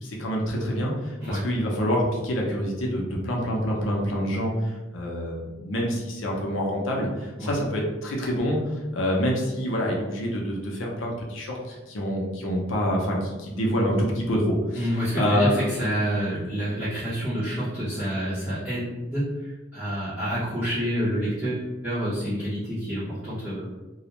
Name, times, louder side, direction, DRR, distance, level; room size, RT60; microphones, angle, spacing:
voice 1, 0.0-14.9 15.1-15.7, equal, 75° left, -2 dB, 0.6 m, -26 dB
voice 2, 14.7-19.2 19.7-23.7, equal, 5° right, -15 dB, 0.7 m, -28 dB
2.3 x 2.1 x 2.9 m, 1.1 s
head